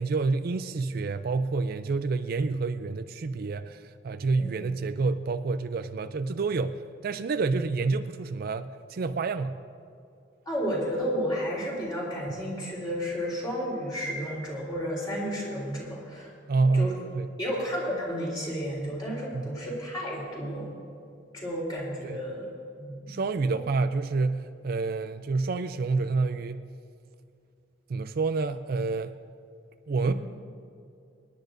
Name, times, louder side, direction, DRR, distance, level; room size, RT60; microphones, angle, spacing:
voice 1, 0.0-9.6 16.5-17.3 19.3-19.6 22.0-22.2 23.1-26.6 27.9-29.2 29.9-30.1, right 3 dB, 50° right, 10 dB, 0.4 m, -28 dB
voice 2, 10.5-16.3 16.7-17.0 17.4-20.7 21.3-22.5 22.8-23.2 23.5-23.6 30.0-30.1, equal, 25° left, -4 dB, 3.7 m, -32 dB
26.5 x 10.5 x 2.6 m, 2.5 s
head